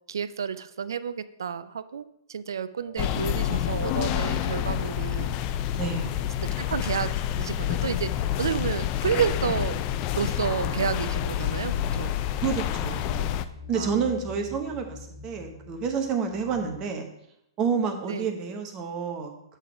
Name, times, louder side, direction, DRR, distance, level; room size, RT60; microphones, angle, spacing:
voice 1, 0.1-5.3 6.4-7.1 7.4-9.8 10.1-12.2 13.7-14.0 18.1-18.3, right 7 dB, 70° right, 15 dB, 0.4 m, -30 dB
sound 1, 2.8-16.8, left 4 dB, 60° left, 2.2 m, -45 dB
sound 2, 3.0-13.4, left 11 dB, 35° left, 0.3 m, -28 dB
voice 2, 5.8-6.2 12.4-13.3 13.7-15.0 15.2-17.0 17.6-19.3, right 6 dB, 30° right, 5 dB, 1.0 m, -29 dB
8.1 x 3.9 x 4.7 m, 0.81 s
figure-of-eight pair, 115°, 2 cm